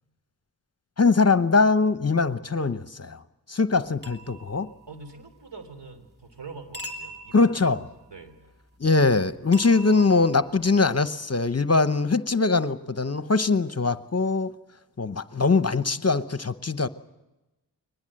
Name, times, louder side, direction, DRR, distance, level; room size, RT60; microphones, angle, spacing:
voice 1, 1.0-3.2 3.5-4.7 7.3-7.8 8.8-14.5 15.0-16.9, left 4 dB, 35° left, 0.9 m, -22 dB
sound 1, 4.0-5.3 6.7-8.2 9.5-10.8, right 1 dB, 25° right, 3.3 m, -42 dB
voice 2, 4.9-7.8 8.1-8.4, right 4 dB, 75° right, 3.5 m, -44 dB
23.0 x 19.5 x 7.7 m
wide cardioid pair, 50°, 42 cm